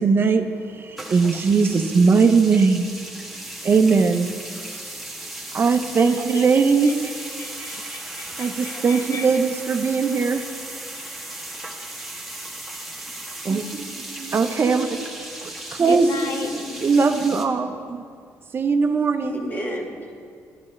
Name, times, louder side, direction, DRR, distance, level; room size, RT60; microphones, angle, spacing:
voice 1, 0.0-2.9 3.6-4.3 5.5-7.1 8.4-10.4 13.4-15.1 15.4-15.5 15.8-16.2 16.8-18.0 18.5-19.4, right 5 dB, 40° right, 7 dB, 0.6 m, -20 dB
sound 1, 1.0-17.5, right 1 dB, ahead, 1.5 m, -36 dB
voice 2, 6.0-6.5 6.8-6.9 7.4-9.3 15.9-16.5, left 4 dB, 55° left, 4 dB, 0.7 m, -34 dB
voice 3, 16.0-16.9 19.2-20.1, left 1 dB, 30° left, 0 dB, 1.9 m, -33 dB
12.0 x 11.5 x 3.2 m, 2.2 s
cardioid pair, 80°, 6 cm